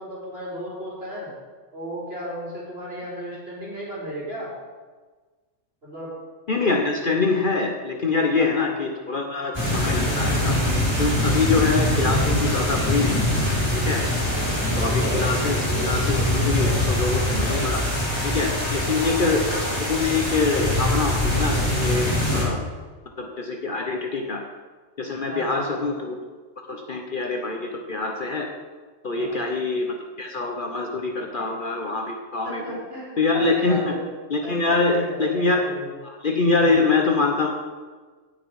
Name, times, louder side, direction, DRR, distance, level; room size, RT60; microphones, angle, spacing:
voice 1, 0.0-1.3 1.7-4.5 5.8-6.1 8.4-8.6 14.3-14.7 18.8-19.4 25.3-25.9 29.1-29.5 32.4-34.1 34.4-36.0 36.6-36.9, equal, 50° right, -7 dB, 4.5 m, -35 dB
voice 2, 6.5-10.6 11.0-13.3 13.7-14.0 14.8-17.8 18.2-22.1 22.3-22.6 23.2-24.4 25.0-26.1 26.7-28.5 29.0-32.8 33.2-33.9 34.3-35.7 36.0-37.6, left 3 dB, 45° left, 2 dB, 1.0 m, -24 dB
sound 1, 9.5-22.4, left 1 dB, 20° left, 3.9 m, -23 dB
16.0 x 6.1 x 4.8 m, 1.4 s
omnidirectional pair, 1.3 m